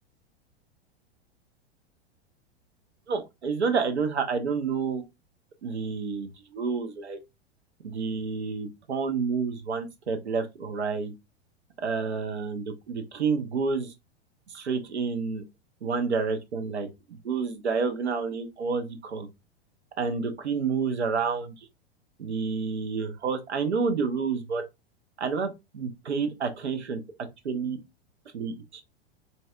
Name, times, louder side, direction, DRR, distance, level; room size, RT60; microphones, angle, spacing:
voice 1, 3.1-5.0 5.6-7.2 7.8-11.1 11.8-13.9 14.5-15.4 15.8-19.3 20.0-21.5 22.2-24.6 25.2-27.0 27.4-27.8 28.3-28.8, right 5 dB, 85° right, 0.7 m, -29 dB
4.0 x 2.2 x 2.3 m
hypercardioid pair, 100°, 32 cm